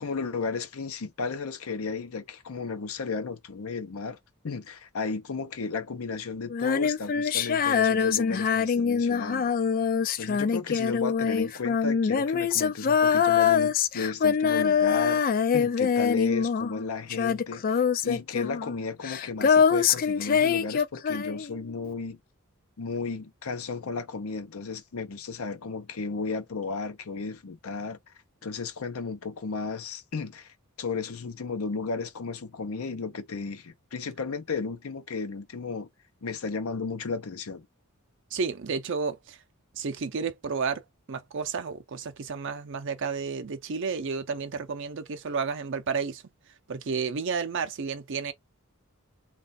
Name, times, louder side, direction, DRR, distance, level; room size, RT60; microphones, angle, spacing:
voice 1, 0.0-4.2 4.4-9.5 10.2-15.2 15.5-22.2 22.8-28.0 28.4-35.9 36.2-37.7, left 4 dB, 75° left, 0.6 m, -34 dB
Female singing, 6.5-16.8 17.1-21.6, left 6 dB, 40° left, 0.3 m, -24 dB
voice 2, 38.3-39.4 39.8-40.8 41.1-46.2 46.7-48.3, right 5 dB, 55° right, 0.5 m, -31 dB
3.1 x 2.4 x 4.0 m
head